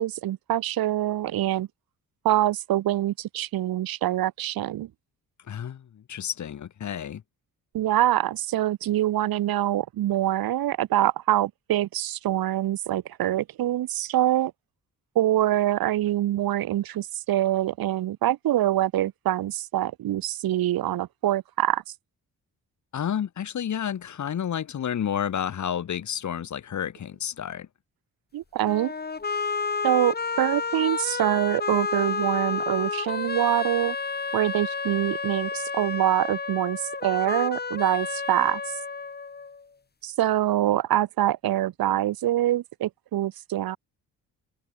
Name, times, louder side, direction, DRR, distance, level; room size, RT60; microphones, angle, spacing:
voice 1, 0.0-1.7 2.2-4.9 7.7-14.5 15.1-21.8 28.3-28.9 29.8-34.0 34.3-38.8 40.0-43.8, right 13 dB, 80° right, 2.5 m, -25 dB
voice 2, 5.5-7.2 22.9-27.7, left 9 dB, 55° left, 2.6 m, -30 dB
sound 1, 28.6-39.6, left 4 dB, 25° left, 2.8 m, -30 dB
cardioid pair, 110°, 35 cm